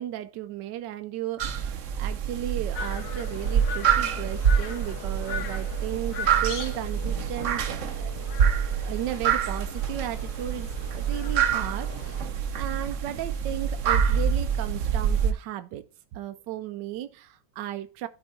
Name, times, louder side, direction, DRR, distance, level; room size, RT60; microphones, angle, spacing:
voice 1, 0.0-8.1 8.8-15.8 16.1-18.1, right 12 dB, 80° right, 1.3 m, -35 dB
sound 1, 1.4-15.3, right 7 dB, 55° right, 1.0 m, -26 dB
sound 2, 2.7-12.2, left 6 dB, 60° left, 1.5 m, -40 dB
12.0 x 4.5 x 4.1 m
omnidirectional pair, 1.9 m